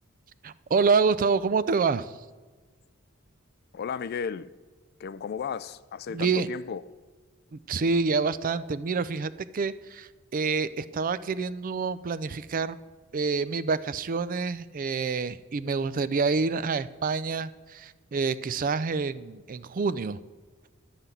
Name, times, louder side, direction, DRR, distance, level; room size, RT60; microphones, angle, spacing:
voice 1, 0.4-2.1 6.1-6.5 7.7-12.8 13.1-20.2, right 4 dB, 40° right, 15 dB, 0.4 m, -27 dB
voice 2, 3.7-4.5 5.0-6.8, left 6 dB, 50° left, 14 dB, 0.3 m, -34 dB
10.5 x 5.8 x 8.1 m, 1.4 s
head